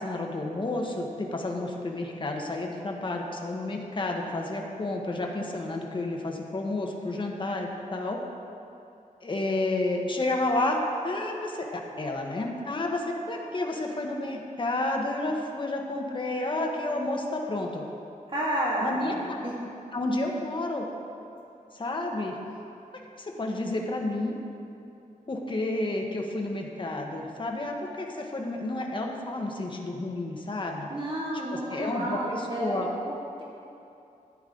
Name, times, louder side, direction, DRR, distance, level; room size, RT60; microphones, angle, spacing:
voice 1, 0.0-8.2 9.2-17.8 18.8-19.5 19.9-20.8 21.7-22.4 23.2-24.3 25.3-30.9 31.7-32.9, left 2 dB, 35° left, 1 dB, 1.1 m, -30 dB
voice 2, 18.3-19.5 30.9-33.4, right 1 dB, 35° right, -6 dB, 2.0 m, -31 dB
13.0 x 9.2 x 3.8 m, 2.7 s
wide cardioid pair, 120°, 14 cm